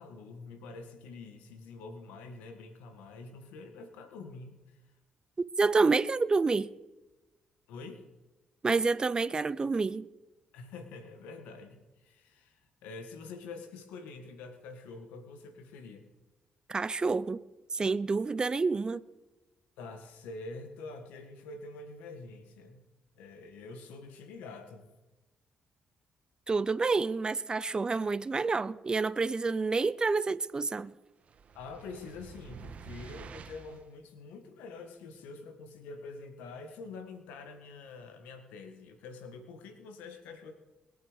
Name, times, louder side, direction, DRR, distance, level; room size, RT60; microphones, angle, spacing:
voice 1, 0.0-4.8 7.7-8.1 10.5-16.0 19.8-22.8 23.1-24.9 31.5-40.5, left 3 dB, 90° left, 1.7 m, -46 dB
voice 2, 5.6-6.7 8.6-10.1 16.7-17.4 17.7-19.0 26.5-30.9, right 4 dB, 30° right, 0.7 m, -28 dB
sound 1, 31.3-33.9, right 6 dB, 55° right, 1.3 m, -48 dB
21.5 x 8.2 x 5.2 m
supercardioid pair, 65°, 3 cm